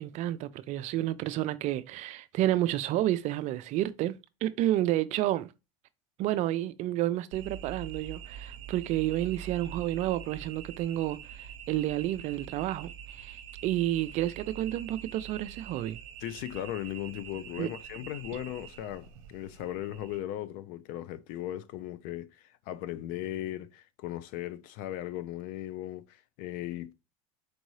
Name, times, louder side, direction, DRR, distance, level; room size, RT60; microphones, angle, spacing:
voice 1, 0.0-5.5 6.2-13.4 13.6-16.0 17.6-17.7, right 14 dB, 45° right, 0.4 m, -30 dB
sound 1, 7.3-20.2, right 8 dB, 70° right, 0.7 m, -45 dB
voice 2, 16.2-26.9, left 13 dB, 60° left, 0.5 m, -37 dB
4.5 x 2.7 x 3.1 m
supercardioid pair, 115°, 17 cm